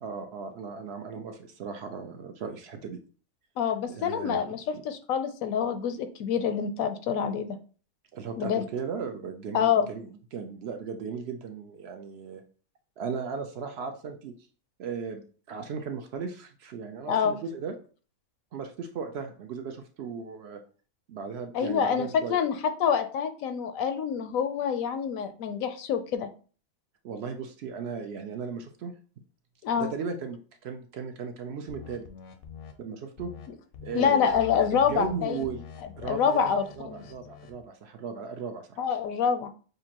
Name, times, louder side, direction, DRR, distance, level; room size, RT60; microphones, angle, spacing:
voice 1, 0.0-3.0 3.9-4.4 4.7-4.8 8.1-12.4 13.0-14.3 14.8-15.2 15.5-17.7 18.5-20.6 21.1-22.4 27.0-28.9 29.8-32.1 32.8-33.3 33.8-34.4 34.7-35.6 36.0-38.8, right 5 dB, 65° right, 6 dB, 0.6 m, -36 dB
voice 2, 3.6-7.6 8.4-8.6 9.5-9.9 17.1-17.4 21.5-26.3 29.6-29.9 33.9-35.4 36.0-37.0 38.8-39.5, left 7 dB, 75° left, 9 dB, 1.0 m, -26 dB
sound 1, 31.7-32.7 33.2-33.5 33.7-34.0 34.3-37.6, left 6 dB, 60° left, 0.7 m, -45 dB
6.4 x 2.5 x 2.9 m, 0.40 s
omnidirectional pair, 1.5 m